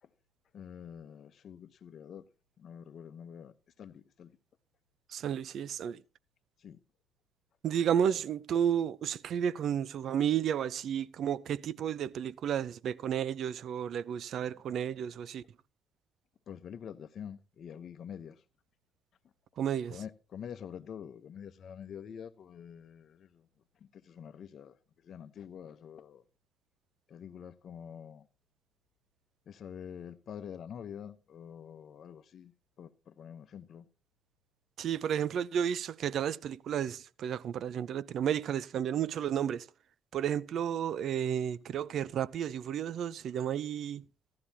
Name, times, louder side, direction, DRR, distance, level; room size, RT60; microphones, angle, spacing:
voice 1, 0.5-2.2 2.6-4.3 6.6-6.8 16.5-18.4 19.9-23.5 23.8-24.8 25.0-26.2 27.1-28.3 29.5-33.9, left 8 dB, 55° left, 0.9 m, -46 dB
voice 2, 5.1-6.0 7.6-15.4 19.6-20.0 34.8-39.7 40.1-44.0, right 9 dB, 65° right, 0.6 m, -32 dB
15.0 x 13.0 x 2.8 m
supercardioid pair, 75°, 0 cm